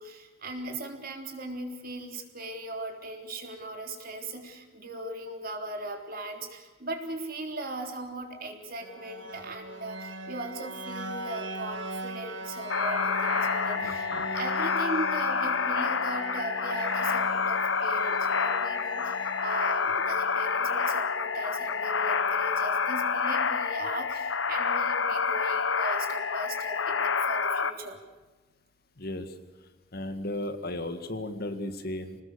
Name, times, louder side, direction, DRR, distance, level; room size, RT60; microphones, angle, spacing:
voice 1, 0.0-28.0, right 2 dB, 50° right, 4 dB, 3.5 m, -38 dB
sound 1, 8.8-22.7, right 2 dB, 75° right, 2.3 m, -40 dB
sound 2, 12.7-27.7, left 5 dB, 75° left, 1.4 m, -28 dB
voice 2, 13.8-14.3 29.0-29.3 29.9-32.2, left 1 dB, 50° left, 8 dB, 2.0 m, -35 dB
26.5 x 19.5 x 6.9 m, 1.2 s
head